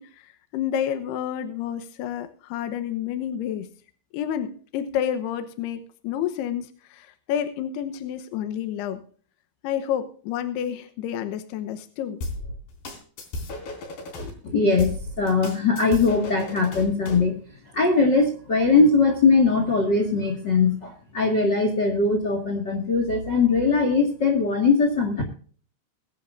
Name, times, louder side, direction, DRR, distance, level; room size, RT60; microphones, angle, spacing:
voice 1, 0.0-3.7 4.1-9.0 9.6-12.2, left 9 dB, 80° left, 9 dB, 3.0 m, -29 dB
sound 1, 12.2-14.3 14.8-17.3, left 2 dB, 65° left, 5.2 m, -34 dB
voice 2, 14.4-17.4 17.7-25.2, left 4 dB, 40° left, 4 dB, 1.7 m, -21 dB
22.0 x 10.0 x 2.6 m, 0.43 s
omnidirectional pair, 4.8 m